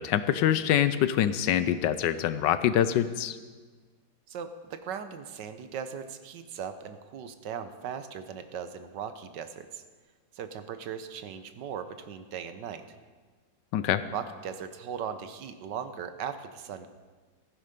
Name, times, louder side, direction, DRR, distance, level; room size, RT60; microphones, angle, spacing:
voice 1, 0.0-3.4 13.7-14.0, left 10 dB, 75° left, 13 dB, 1.2 m, -25 dB
voice 2, 4.3-9.8 10.3-12.8 14.1-16.9, right 7 dB, 70° right, 10 dB, 1.4 m, -38 dB
15.0 x 10.0 x 5.2 m, 1.4 s
omnidirectional pair, 2.0 m